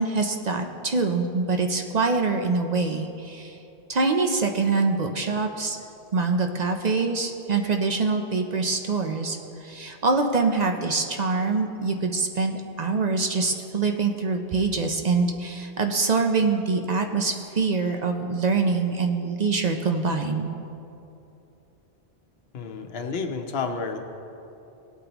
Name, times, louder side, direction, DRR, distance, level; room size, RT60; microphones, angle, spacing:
voice 1, 0.0-3.6 3.9-5.8 6.1-20.6, right 4 dB, 50° right, 4 dB, 0.6 m, -24 dB
voice 2, 22.5-24.0, left 4 dB, 75° left, 5 dB, 1.0 m, -30 dB
17.5 x 8.3 x 3.0 m, 2.8 s
omnidirectional pair, 1.0 m